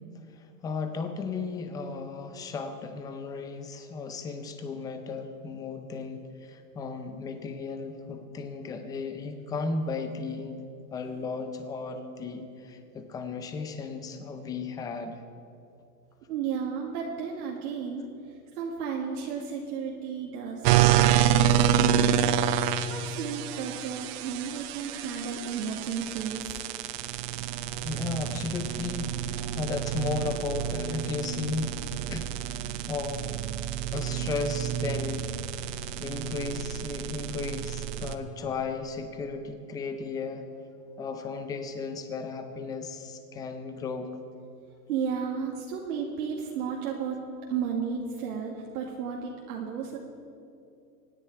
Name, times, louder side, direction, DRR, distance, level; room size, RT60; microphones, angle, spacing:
voice 1, 0.6-10.6 10.9-15.2 27.8-31.8 32.1-32.3 32.5-33.4 33.9-35.3 35.7-40.4 41.0-44.1, left 4 dB, 10° left, 7 dB, 0.4 m, -35 dB
voice 2, 16.3-18.0 18.6-22.1 22.9-26.6 44.9-47.2 47.5-50.0, right 6 dB, 65° right, -2 dB, 2.1 m, -33 dB
sound 1, 20.6-38.1, right 10 dB, 40° right, 0.8 m, -28 dB
24.5 x 9.7 x 4.6 m, 2.6 s
hypercardioid pair, 140°, 48 cm